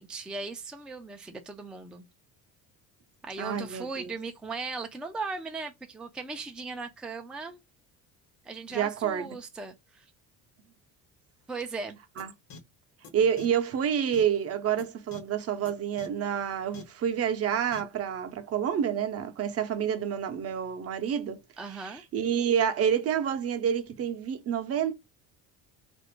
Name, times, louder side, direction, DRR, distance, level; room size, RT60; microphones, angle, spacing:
voice 1, 0.0-2.1 3.2-7.6 8.4-10.1 11.5-12.0 21.6-22.0, right 4 dB, 5° right, 0.4 m, -38 dB
voice 2, 3.4-4.1 8.7-9.4 12.2-12.3 13.1-21.4 21.7-24.9, right 8 dB, 40° right, 0.7 m, -28 dB
sound 1, 12.2-12.3 12.5-12.6 13.0-13.1 13.4-13.5 14.1-14.2 14.8-14.9 15.1-15.2 15.6-15.7 16.0-16.1 16.7-16.8 17.7-17.8, left 4 dB, 50° left, 0.8 m, -45 dB
2.5 x 2.0 x 2.9 m
supercardioid pair, 90°, 36 cm